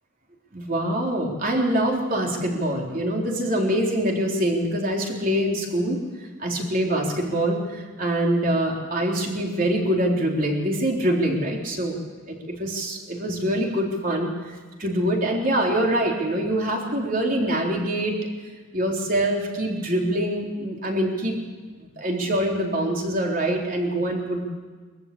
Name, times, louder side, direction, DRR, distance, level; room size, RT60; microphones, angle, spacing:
voice 1, 0.5-12.0 12.3-18.1 18.7-21.4 21.8-24.4, right 1 dB, 45° right, 0 dB, 3.9 m, -24 dB
22.5 x 14.5 x 8.7 m, 1.4 s
head